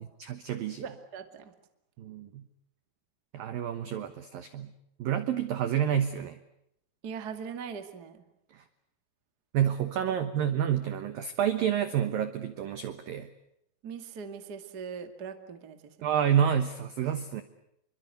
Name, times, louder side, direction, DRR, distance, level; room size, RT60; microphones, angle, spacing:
voice 1, 0.0-0.8 2.0-2.4 3.3-4.7 5.0-6.4 8.5-8.6 9.5-13.3 16.0-17.4, right 9 dB, 80° right, 11 dB, 2.0 m, -29 dB
voice 2, 0.8-1.5 7.0-8.2 10.1-10.2 13.8-16.1, right 6 dB, 50° right, 8 dB, 1.1 m, -41 dB
27.5 x 24.0 x 8.0 m, 0.78 s
omnidirectional pair, 5.9 m